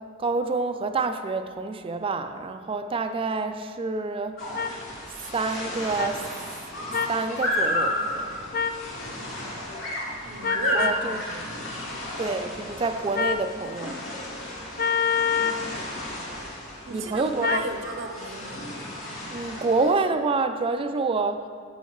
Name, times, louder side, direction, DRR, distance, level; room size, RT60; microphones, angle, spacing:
voice 1, 0.2-4.4 5.3-6.2 6.7-8.4 10.7-11.2 12.2-14.0 16.9-17.6 19.3-21.5, right 3 dB, 25° right, 8 dB, 0.3 m, -27 dB
sound 1, 4.4-19.9, left 1 dB, 75° left, 2.1 m, -33 dB
sound 2, 4.5-4.7 6.0-6.1 6.9-7.2 8.5-8.8 10.4-11.0 13.1-13.5 14.8-15.6 17.4-17.7, left 6 dB, 45° left, 0.3 m, -25 dB
voice 2, 10.2-11.5 16.9-18.7, right 4 dB, 65° right, 6 dB, 0.7 m, -36 dB
14.0 x 5.5 x 3.1 m, 2.1 s
head